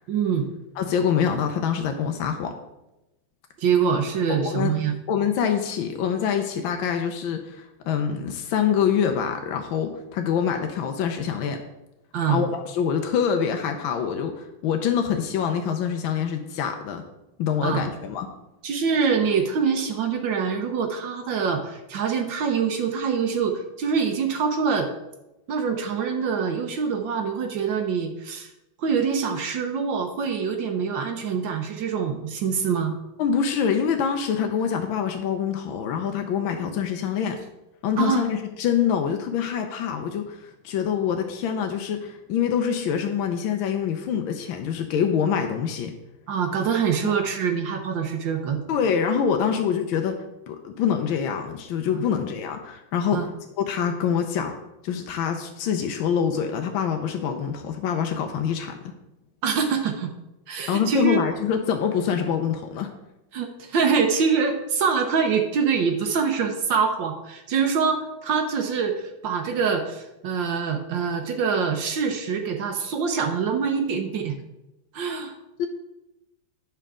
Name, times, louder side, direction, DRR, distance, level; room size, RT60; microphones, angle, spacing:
voice 1, 0.1-0.5 3.6-5.0 12.1-12.4 17.6-17.9 18.6-24.9 25.5-28.5 28.8-33.0 38.0-38.2 46.3-48.6 51.9-52.0 53.1-53.3 59.4-60.1 60.5-61.2 63.3-74.4 74.9-75.3, right 6 dB, 70° right, 4 dB, 1.5 m, -25 dB
voice 2, 0.8-2.5 4.3-4.7 5.1-11.6 12.3-17.1 17.4-18.3 33.2-37.4 37.8-45.9 47.0-47.2 48.7-53.3 53.6-54.6 54.8-58.9 60.7-62.9 75.6-75.7, left 7 dB, 80° left, 5 dB, 1.5 m, -25 dB
9.2 x 6.8 x 3.7 m, 0.93 s
omnidirectional pair, 2.2 m